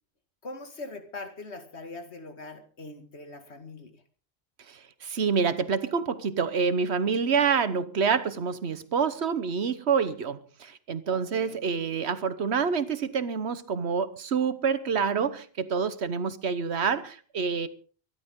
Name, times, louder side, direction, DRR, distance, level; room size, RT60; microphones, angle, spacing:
voice 1, 0.4-3.9 11.1-11.6, left 2 dB, 80° left, 2.3 m, -42 dB
voice 2, 4.7-17.7, right 6 dB, 80° right, 1.4 m, -27 dB
24.0 x 11.5 x 3.7 m
omnidirectional pair, 1.1 m